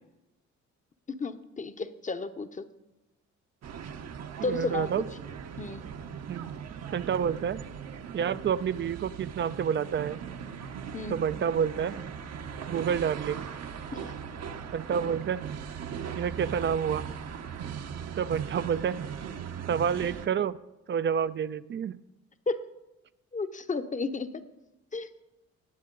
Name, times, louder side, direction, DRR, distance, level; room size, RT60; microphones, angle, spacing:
voice 1, 1.2-2.6 4.4-4.9 5.6-5.8 10.9-11.2 13.9-14.1 22.5-22.6 23.3-24.3 24.9-25.1, left 3 dB, 25° left, 11 dB, 0.8 m, -32 dB
sound 1, 3.6-20.3, right 7 dB, 60° right, 0.9 m, -39 dB
voice 2, 4.5-5.0 6.3-6.5 6.9-7.6 8.1-10.2 11.1-12.0 12.6-13.5 14.7-15.4 16.1-17.1 18.2-19.0 19.7-20.6 20.9-22.0, right 8 dB, 40° right, 16 dB, 0.4 m, -29 dB
19.0 x 7.4 x 3.9 m, 0.96 s
cardioid pair, 90°, 30 cm